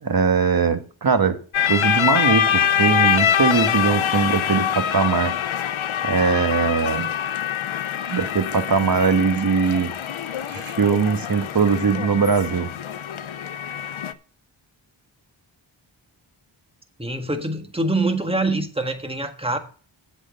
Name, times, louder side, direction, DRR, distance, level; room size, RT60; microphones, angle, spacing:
voice 1, 0.0-1.4 1.7-5.3 6.0-7.1 8.1-9.9 10.5-12.7, right 5 dB, 45° right, 1.4 m, -21 dB
sound 1, 1.5-14.1, left 9 dB, 75° left, 0.8 m, -24 dB
voice 2, 17.0-19.6, right 2 dB, 10° right, 1.7 m, -24 dB
8.0 x 6.3 x 7.6 m
cardioid pair, 65°, 48 cm